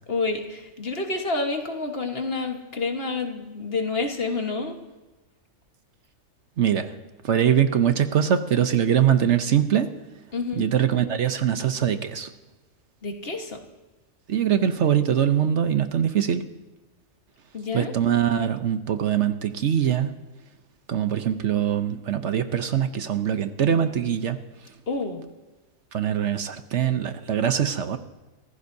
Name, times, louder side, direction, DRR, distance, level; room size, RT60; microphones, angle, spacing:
voice 1, 0.1-4.8 10.3-10.7 13.0-13.6 17.5-17.9 24.9-25.2, left 3 dB, 45° left, 4 dB, 1.6 m, -28 dB
voice 2, 6.6-6.9 7.2-9.9 10.6-12.3 14.3-16.4 17.7-20.1 20.9-24.4 25.9-28.0, right 9 dB, 65° right, 9 dB, 1.1 m, -22 dB
26.0 x 15.0 x 2.7 m, 1.1 s
omnidirectional pair, 1.4 m